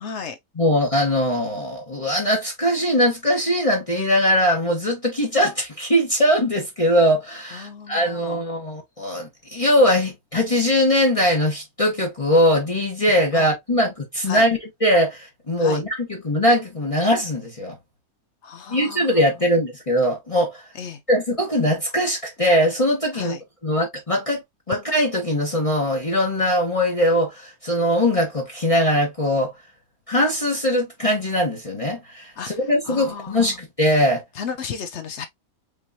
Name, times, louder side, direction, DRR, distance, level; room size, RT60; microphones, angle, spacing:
voice 1, 0.0-0.4 7.6-8.4 13.3-13.5 14.3-14.4 15.6-15.8 18.4-19.0 20.8-21.0 23.1-23.4 32.4-32.5 32.9-33.4 34.4-35.3, left 6 dB, 65° left, 0.8 m, -33 dB
voice 2, 0.5-17.8 18.7-20.6 21.1-24.4 24.7-29.5 30.1-34.2, equal, 25° left, 1.4 m, -21 dB
5.1 x 3.0 x 2.7 m
omnidirectional pair, 1.5 m